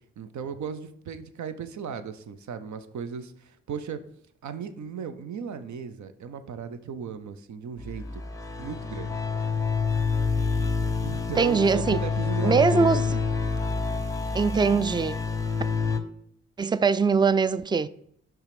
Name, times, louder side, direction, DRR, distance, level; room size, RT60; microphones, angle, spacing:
voice 1, 0.2-4.0 4.4-8.2 8.6-9.2 11.0-13.2, right 6 dB, 75° right, 0.6 m, -36 dB
sound 1, 7.8-16.0, left 4 dB, 10° left, 0.8 m, -28 dB
voice 2, 11.4-12.0 12.4-13.0 14.3-15.2 16.6-17.9, right 5 dB, 15° right, 0.3 m, -22 dB
5.7 x 3.6 x 5.9 m
cardioid pair, 45°, 29 cm